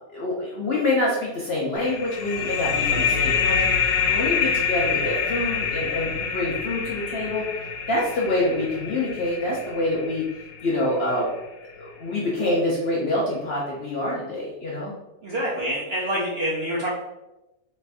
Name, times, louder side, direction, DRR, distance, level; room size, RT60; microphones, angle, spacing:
voice 1, 0.1-7.4 7.9-10.2 10.6-11.3 11.8-14.9, left 1 dB, 60° left, -5 dB, 0.7 m, -26 dB
sound 1, 1.8-11.1, left 6 dB, 85° left, 1.1 m, -26 dB
voice 2, 15.2-16.9, equal, 60° right, -5 dB, 0.7 m, -26 dB
3.2 x 2.5 x 3.3 m, 0.98 s
omnidirectional pair, 1.7 m